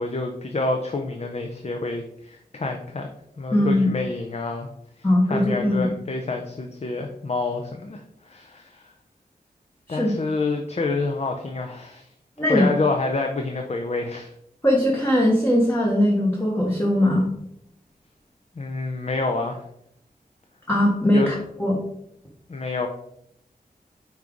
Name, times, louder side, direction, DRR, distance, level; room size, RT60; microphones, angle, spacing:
voice 1, 0.0-3.1 3.4-4.7 5.3-8.9 9.9-12.1 12.5-14.3 18.6-19.6 21.1-21.3 22.5-22.9, left 3 dB, 40° left, 3 dB, 0.6 m, -28 dB
voice 2, 3.5-3.9 5.0-5.9 9.9-10.1 12.4-12.7 14.6-17.3 20.7-21.8, left 1 dB, 15° left, -2 dB, 1.0 m, -20 dB
5.5 x 4.6 x 3.8 m, 0.74 s
wide cardioid pair, 105°, 16 cm